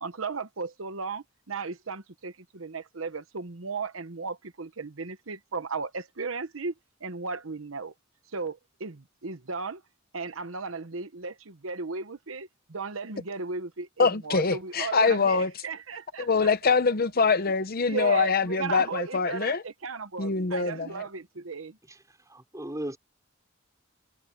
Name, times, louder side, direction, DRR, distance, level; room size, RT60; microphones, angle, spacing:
voice 1, 0.0-6.7 7.0-7.9 8.3-9.8 10.1-16.3 17.9-21.8, right 4 dB, 80° right, 1.1 m, -35 dB
voice 2, 14.0-15.6 16.2-19.6 20.2-21.1, left 4 dB, 50° left, 0.8 m, -24 dB
voice 3, 21.8-23.0, right 1 dB, 15° right, 5.6 m, -38 dB
head